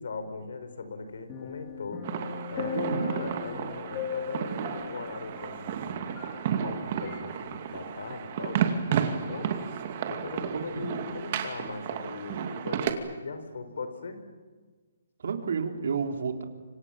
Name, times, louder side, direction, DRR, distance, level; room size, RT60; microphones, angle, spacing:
voice 1, 0.0-2.1 2.5-6.2 6.5-9.6 10.1-14.2, left 4 dB, 70° left, 9 dB, 5.0 m, -39 dB
sound 1, 1.3-6.7 7.1-7.2, left 6 dB, 20° left, 2.6 m, -38 dB
sound 2, 2.0-12.9, right 8 dB, 35° right, 2.5 m, -32 dB
voice 2, 2.7-3.2 10.5-10.9 15.2-16.4, right 5 dB, 65° right, 4 dB, 3.7 m, -31 dB
29.0 x 25.5 x 7.5 m, 1.4 s
hypercardioid pair, 170°, 0 cm